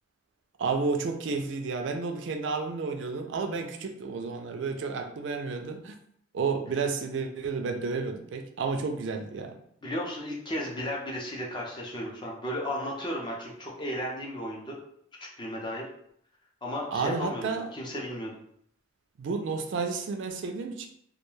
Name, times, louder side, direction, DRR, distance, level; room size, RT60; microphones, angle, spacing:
voice 1, 0.6-5.9 6.3-9.5 16.9-17.7 19.2-20.9, right 4 dB, 70° right, 5 dB, 0.3 m, -31 dB
voice 2, 9.8-14.8 15.2-15.8 16.6-18.3, equal, 25° left, -2 dB, 0.5 m, -34 dB
2.3 x 2.2 x 3.0 m, 0.69 s
head